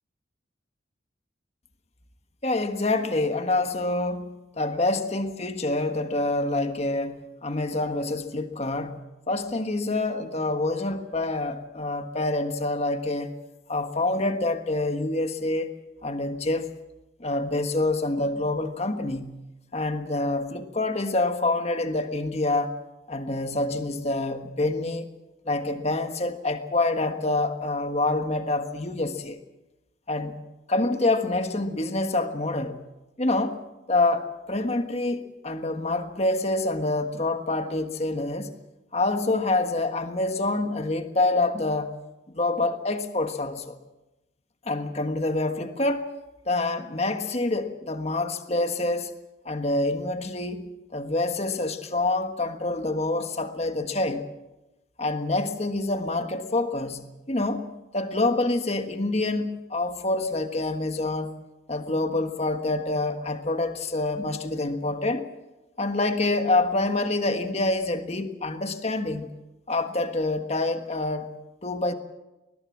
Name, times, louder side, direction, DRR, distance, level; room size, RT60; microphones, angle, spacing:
voice 1, 2.4-9.0 9.3-13.4 13.7-15.7 16.0-16.7 17.2-19.4 19.7-22.8 23.1-25.1 25.4-29.4 30.1-30.3 30.7-32.8 33.2-33.6 33.9-38.5 38.9-41.9 42.3-43.8 44.6-46.1 46.5-49.1 49.4-54.3 55.0-61.4 61.7-65.3 65.8-69.3 69.7-71.3 71.6-71.9, left 2 dB, 35° left, 7 dB, 1.5 m, -26 dB
21.5 x 20.0 x 7.4 m, 1.0 s
head